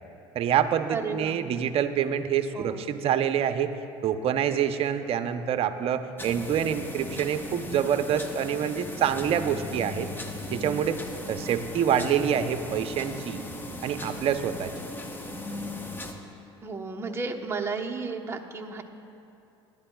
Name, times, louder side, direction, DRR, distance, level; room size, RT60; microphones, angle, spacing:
voice 1, 0.3-3.7 4.0-10.1 10.5-13.4 13.8-14.7, right 9 dB, 45° right, 9 dB, 0.7 m, -26 dB
voice 2, 0.9-1.4 2.5-2.9 16.6-18.8, right 4 dB, 20° right, 1 dB, 1.1 m, -33 dB
sound 1, 6.2-16.1, left 1 dB, 15° left, 1.1 m, -38 dB
18.0 x 12.0 x 2.4 m, 2.9 s
hypercardioid pair, 80°, 13 cm